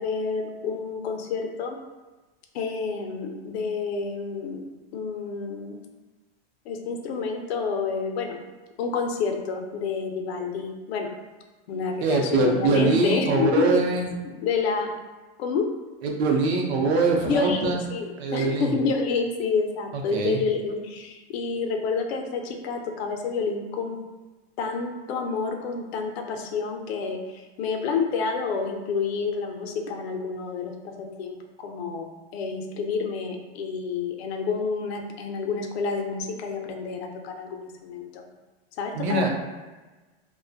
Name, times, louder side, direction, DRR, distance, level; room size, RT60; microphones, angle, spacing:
voice 1, 0.0-1.8 2.5-4.6 4.9-5.8 6.7-8.4 8.8-11.1 11.7-13.8 14.2-14.9 15.4-15.7 17.2-24.0 24.6-38.3 38.8-39.3, left 5 dB, 75° left, 3 dB, 0.5 m, -29 dB
voice 2, 12.0-14.1 16.0-17.8 18.2-18.7 20.1-20.4 39.0-39.3, right 3 dB, 85° right, 1 dB, 0.6 m, -23 dB
2.4 x 2.1 x 2.5 m, 1.2 s
supercardioid pair, 160°, 31 cm